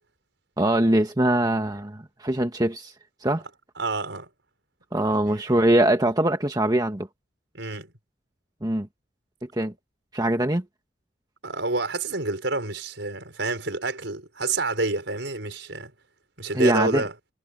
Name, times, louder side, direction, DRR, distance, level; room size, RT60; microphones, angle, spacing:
voice 1, 0.6-2.9 3.2-3.4 4.9-7.1 8.6-8.9 9.5-9.7 10.1-10.6 16.5-17.0, right 1 dB, 20° right, 1.5 m, -22 dB
voice 2, 3.8-4.3 5.3-5.4 7.5-7.9 11.4-15.9 16.4-17.1, right 3 dB, 70° right, 5.1 m, -28 dB
head